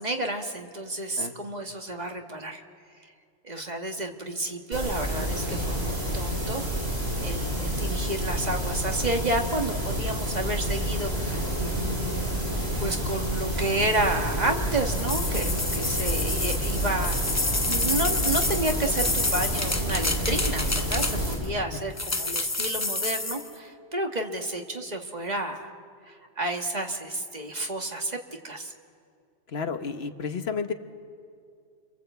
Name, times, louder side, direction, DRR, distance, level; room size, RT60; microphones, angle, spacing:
voice 1, 0.0-2.6 3.0-3.1 3.4-6.6 7.2-11.5 11.8-12.3 12.8-17.4 17.7-25.7 26.1-28.2 28.4-28.7, right 1 dB, 40° right, 3 dB, 1.8 m, -31 dB
sound 1, 4.7-21.3, equal, 70° right, 6.6 m, -29 dB
sound 2, 14.9-21.5 22.0-23.5, left 2 dB, 15° left, 0.7 m, -29 dB
voice 2, 29.5-30.7, left 5 dB, 70° left, 8 dB, 1.4 m, -31 dB
29.5 x 23.0 x 8.2 m, 2.3 s
omnidirectional pair, 1.1 m